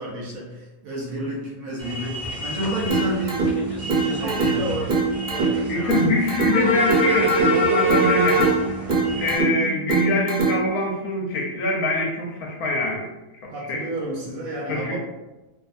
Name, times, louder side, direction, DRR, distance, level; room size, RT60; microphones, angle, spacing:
voice 1, 0.0-4.9 13.5-15.0, right 1 dB, 70° right, -3 dB, 0.9 m, -31 dB
sound 1, 1.8-9.3, equal, 45° left, 0.6 m, -25 dB
sound 2, 2.9-10.9, right 4 dB, 45° right, 0.6 m, -24 dB
voice 2, 5.7-8.9 9.2-13.1 13.7-13.8 14.7-15.0, left 1 dB, 70° left, -1 dB, 1.0 m, -24 dB
2.6 x 2.4 x 2.4 m, 1.1 s
omnidirectional pair, 1.7 m